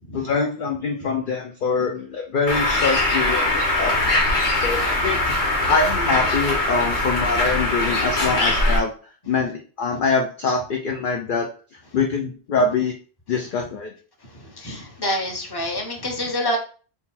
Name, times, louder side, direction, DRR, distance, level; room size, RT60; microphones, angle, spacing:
voice 1, 0.1-3.5 3.8-5.2 5.7-8.9 9.3-12.9 13.3-13.9, left 4 dB, 55° left, 2 dB, 0.7 m, -24 dB
Bird, 2.5-8.8, left 2 dB, 80° left, 1.5 m, -21 dB
voice 2, 14.4-16.6, left 1 dB, 25° left, 1 dB, 0.9 m, -27 dB
3.8 x 2.3 x 4.1 m, 0.38 s
omnidirectional pair, 1.1 m